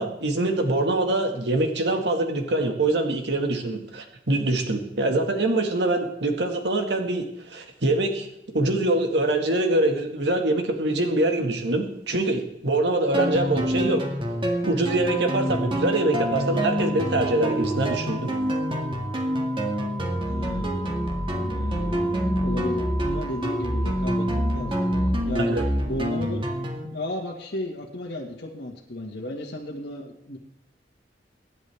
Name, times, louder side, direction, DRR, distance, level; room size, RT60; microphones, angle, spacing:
voice 1, 0.0-8.3 8.5-14.0 14.6-18.3 25.4-25.7, right 2 dB, 75° right, 4 dB, 1.9 m, -24 dB
sound 1, 13.1-26.9, equal, 30° right, 2.0 m, -26 dB
sound 2, 15.1-25.1, right 4 dB, 5° left, 1.5 m, -40 dB
voice 2, 20.3-21.0 21.4-25.5 25.9-26.4 26.9-30.4, left 1 dB, 80° left, -3 dB, 1.8 m, -34 dB
24.5 x 10.5 x 3.5 m, 0.84 s
head